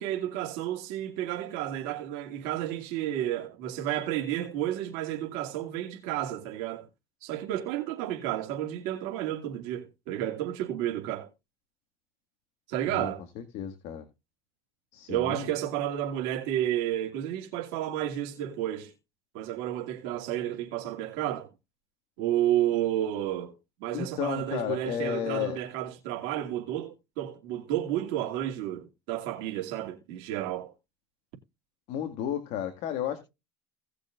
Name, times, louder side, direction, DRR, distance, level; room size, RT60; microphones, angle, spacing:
voice 1, 0.0-6.9 7.2-11.3 12.7-13.2 15.1-18.9 19.3-21.5 22.2-23.5 23.8-30.7, right 12 dB, 75° right, 2.6 m, -31 dB
voice 2, 12.9-14.0 14.9-15.5 23.9-25.6 31.9-33.2, left 10 dB, 65° left, 2.0 m, -33 dB
18.0 x 6.6 x 2.5 m
supercardioid pair, 110°, 13 cm